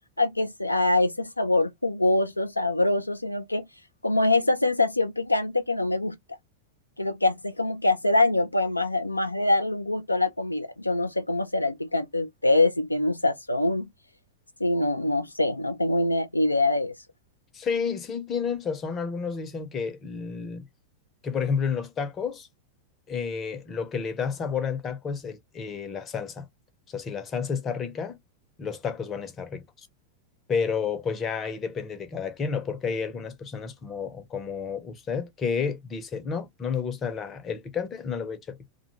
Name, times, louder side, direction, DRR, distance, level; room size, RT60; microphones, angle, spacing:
voice 1, 0.2-3.7 4.0-6.2 7.0-13.9 14.6-16.9, left 2 dB, 85° left, 0.3 m, -24 dB
voice 2, 17.5-20.7 21.2-22.5 23.1-26.5 26.9-28.2 28.6-29.9 30.5-38.7, left 6 dB, 25° left, 0.6 m, -31 dB
2.5 x 2.2 x 2.8 m
figure-of-eight pair, 90°, 0 cm